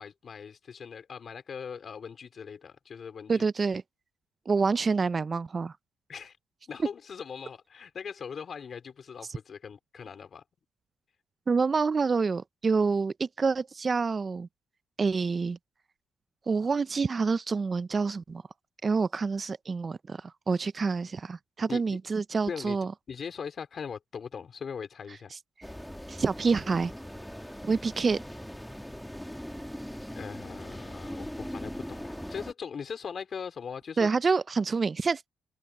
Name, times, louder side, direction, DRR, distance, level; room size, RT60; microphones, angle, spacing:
voice 1, 0.0-3.5 6.1-6.3 6.7-10.4 21.7-22.0 22.5-22.8 23.1-25.3 30.2-34.1, left 6 dB, 50° left, 4.1 m, -40 dB
voice 2, 3.3-3.8 4.5-5.7 11.5-14.5 15.0-15.6 16.5-18.4 18.8-22.9 25.3-25.4 26.1-26.9 27.6-28.2 34.0-35.3, right 4 dB, 35° right, 0.4 m, -27 dB
sound 1, 25.6-32.5, equal, 5° left, 2.4 m, -40 dB
cardioid pair, 90°, 0 cm